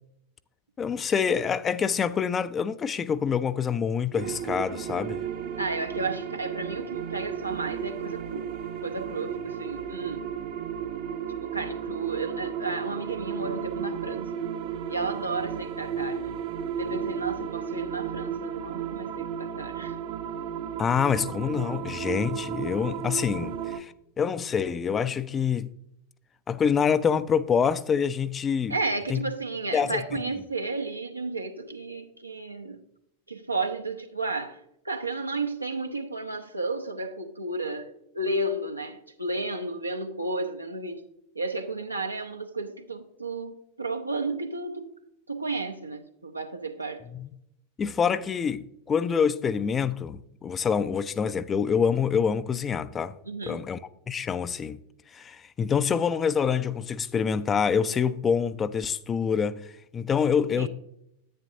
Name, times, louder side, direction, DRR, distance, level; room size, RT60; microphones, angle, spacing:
voice 1, 0.8-5.2 20.8-25.7 26.5-28.7 29.1-29.2 29.7-30.0 47.1-47.3 47.8-53.1 53.5-53.8 54.1-54.8 55.1-60.7, left 7 dB, 20° left, 0.4 m, -26 dB
sound 1, 4.1-23.8, right 8 dB, 45° right, 0.7 m, -34 dB
voice 2, 5.6-8.5 8.8-10.3 11.4-14.3 14.9-16.4 16.7-20.0 28.7-32.8 33.3-34.6 34.8-41.0 41.3-44.9 45.3-47.0 53.2-53.6 60.5-60.7, right 2 dB, 85° right, 0.8 m, -33 dB
10.0 x 8.8 x 2.7 m
figure-of-eight pair, 90°, 0 cm